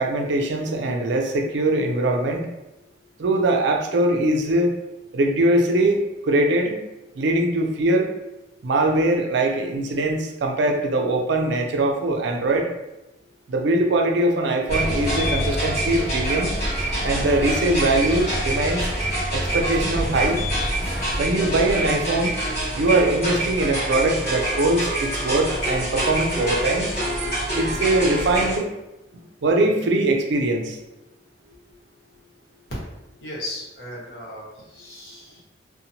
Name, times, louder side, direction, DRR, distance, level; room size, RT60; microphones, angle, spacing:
voice 1, 0.0-2.4 3.2-4.7 5.1-6.8 7.1-8.1 8.6-12.7 13.5-16.6 17.0-18.8 19.3-20.4 21.2-22.3 22.7-27.0 27.5-28.7 29.4-30.8, right 2 dB, 65° right, 2 dB, 0.4 m, -22 dB
sound 1, 14.7-28.6, right 1 dB, 40° left, 1.2 m, -25 dB
voice 2, 33.2-35.4, left 1 dB, 65° left, -6 dB, 1.1 m, -36 dB
2.8 x 2.1 x 2.6 m, 0.95 s
head